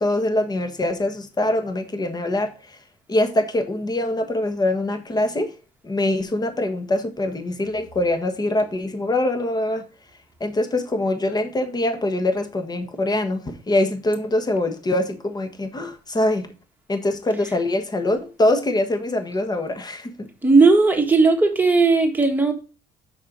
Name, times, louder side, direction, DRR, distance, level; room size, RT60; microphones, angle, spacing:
voice 1, 0.0-2.8 3.1-5.5 5.8-9.8 10.4-16.5 16.9-20.3, left 1 dB, 25° left, 1.5 m, -23 dB
voice 2, 20.4-22.5, right 3 dB, 10° right, 1.8 m, -16 dB
6.6 x 5.7 x 5.0 m
cardioid pair, 110°, 17 cm